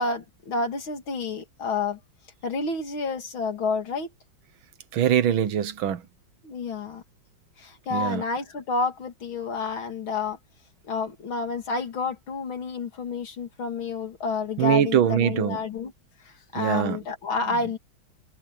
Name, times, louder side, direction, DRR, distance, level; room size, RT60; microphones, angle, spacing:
voice 1, 0.0-2.0 2.4-4.1 6.4-7.0 7.6-10.4 10.9-15.9 16.5-17.8, left 4 dB, 85° left, 3.3 m, -29 dB
voice 2, 4.9-6.0 7.9-8.2 14.6-15.6 16.6-17.0, right 10 dB, 85° right, 1.8 m, -22 dB
omnidirectional pair, 2.1 m